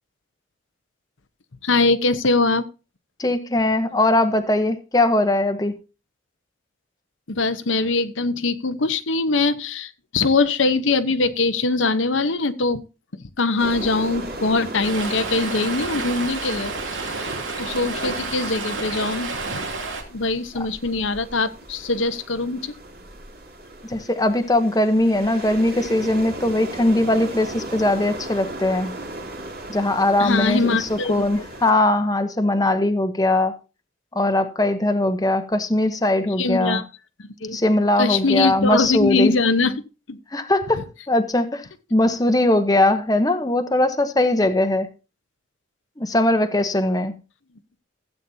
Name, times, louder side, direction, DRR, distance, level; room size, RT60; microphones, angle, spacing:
voice 1, 1.6-2.6 7.3-12.8 13.1-19.6 20.1-22.7 30.2-31.4 36.4-36.9 37.2-37.6 38.0-39.8 40.1-40.2 40.7-40.8, left 3 dB, 90° left, 1.0 m, -22 dB
voice 2, 3.2-5.7 23.9-28.9 29.7-33.6 34.1-36.8 37.5-39.3 40.3-41.6 41.9-44.9 46.0-47.1, left 1 dB, 20° left, 0.9 m, -20 dB
sound 1, 13.6-31.7, right 1 dB, 50° right, 2.9 m, -37 dB
Stream, 14.8-20.0, right 3 dB, 90° right, 2.9 m, -30 dB
15.5 x 8.5 x 2.8 m
head